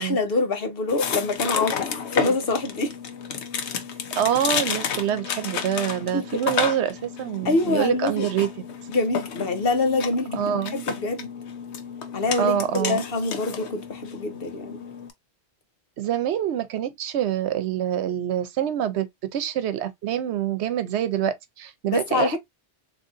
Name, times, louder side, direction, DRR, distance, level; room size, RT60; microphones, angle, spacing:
voice 1, 0.0-2.9 6.1-6.2 7.4-8.3 8.9-11.3 12.1-14.8 21.9-22.4, left 2 dB, 60° left, 1.1 m, -25 dB
Willis Kitchen Sounds, 0.9-15.1, left 6 dB, 85° left, 1.0 m, -31 dB
voice 2, 4.2-8.6 10.3-10.8 12.4-13.0 16.0-22.4, right 10 dB, 90° right, 0.9 m, -26 dB
3.8 x 2.9 x 2.5 m
omnidirectional pair, 1.1 m